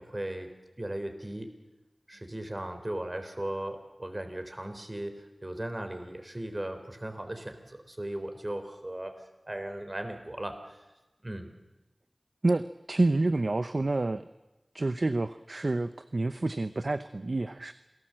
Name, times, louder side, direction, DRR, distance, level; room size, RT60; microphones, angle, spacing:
voice 1, 0.0-1.5 2.1-10.8 11.2-11.6, right 1 dB, 35° right, 7 dB, 3.6 m, -37 dB
voice 2, 12.4-14.3 14.7-17.7, right 2 dB, 65° right, 12 dB, 0.7 m, -28 dB
27.5 x 18.5 x 7.7 m, 1.1 s
wide cardioid pair, 45°, 0 cm